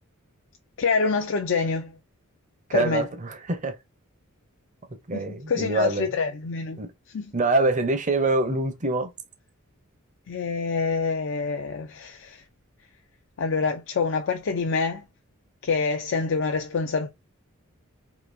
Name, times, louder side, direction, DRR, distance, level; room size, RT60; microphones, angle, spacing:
voice 1, 0.8-2.0 2.7-3.1 5.1-6.8 7.1-7.3 10.3-12.4 13.4-15.0 15.6-17.1, left 4 dB, 60° left, 0.5 m, -26 dB
voice 2, 2.7-3.7 5.1-6.1 6.8-6.9 7.3-9.1, right 2 dB, 35° right, 0.7 m, -25 dB
3.8 x 2.8 x 2.6 m
head